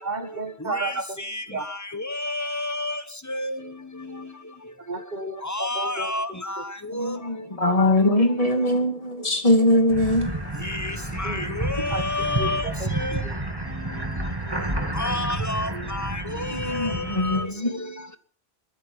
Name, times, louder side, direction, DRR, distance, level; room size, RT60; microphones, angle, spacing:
voice 1, 0.0-1.2 1.5-1.6 4.9-5.4 5.7-6.1 11.2-11.5 11.9-12.0 12.4-13.3, right 3 dB, 45° right, 1.5 m, -32 dB
voice 2, 1.2-3.0 3.3-3.6 5.4-6.7 6.9-7.2 10.6-12.6 12.9-13.2 14.9-17.5, left 2 dB, 15° left, 1.2 m, -30 dB
voice 3, 6.9-10.7 11.8-11.9 16.5-18.2, left 1 dB, 35° left, 2.6 m, -22 dB
sound 1, 9.9-17.4, right 2 dB, 20° right, 2.5 m, -30 dB
22.5 x 10.5 x 5.6 m
omnidirectional pair, 1.1 m